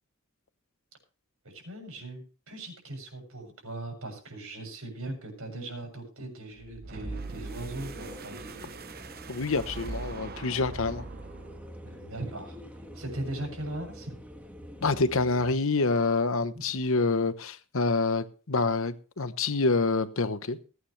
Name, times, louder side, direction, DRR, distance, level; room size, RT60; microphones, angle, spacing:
voice 1, 1.5-8.6 11.8-12.6 12.9-14.1, right 1 dB, 75° right, 3 dB, 7.4 m, -39 dB
sound 1, 6.6-11.8, right 3 dB, 45° right, 1.0 m, -41 dB
sound 2, 7.0-15.5, equal, 5° right, 1.8 m, -46 dB
voice 2, 9.3-11.0 14.8-20.6, left 3 dB, 70° left, 12 dB, 1.0 m, -27 dB
20.5 x 9.5 x 3.3 m, 0.37 s
head